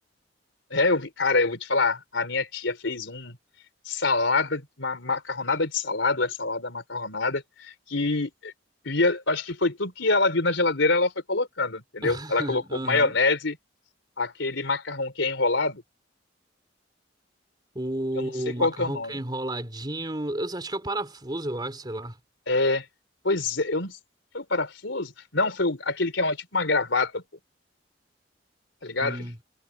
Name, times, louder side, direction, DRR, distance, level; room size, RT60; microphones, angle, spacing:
voice 1, 0.7-3.4 3.9-8.5 8.9-13.6 14.2-15.8 18.1-18.3 18.6-19.2 22.5-22.9 23.2-24.0 24.3-27.2 28.8-29.3, left 3 dB, 75° left, 3.6 m, -25 dB
voice 2, 12.0-13.2 17.7-22.2 29.0-29.4, right 1 dB, 20° right, 3.5 m, -32 dB
head